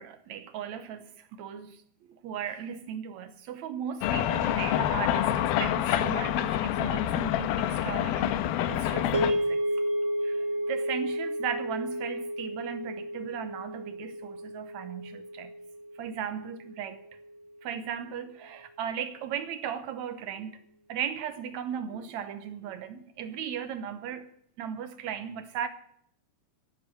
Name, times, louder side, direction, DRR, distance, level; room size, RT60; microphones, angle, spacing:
voice 1, 0.0-1.8 2.1-8.4 8.7-9.6 10.2-15.5 16.0-17.0 17.6-20.6 20.9-24.3 24.6-25.7, right 8 dB, 70° right, 1.8 m, -37 dB
sound 1, 4.0-9.3, left 11 dB, 85° left, 2.7 m, -27 dB
sound 2, 9.1-17.4, equal, 50° right, 3.6 m, -32 dB
13.0 x 11.5 x 7.7 m
omnidirectional pair, 4.2 m